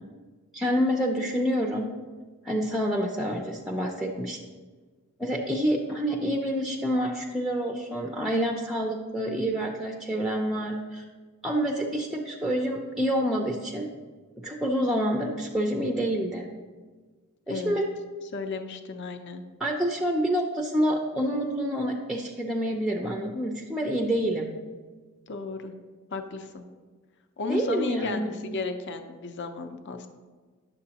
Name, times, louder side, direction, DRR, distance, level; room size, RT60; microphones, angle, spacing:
voice 1, 0.5-1.9 2.4-4.4 5.2-11.0 11.4-13.9 14.4-16.5 17.5-17.8 19.6-24.5 27.5-28.3, equal, ahead, 1 dB, 0.4 m, -27 dB
voice 2, 18.3-19.4 25.3-25.7 26.1-26.7 27.4-30.1, left 3 dB, 50° left, 7 dB, 0.6 m, -34 dB
9.8 x 6.8 x 2.8 m, 1.4 s
head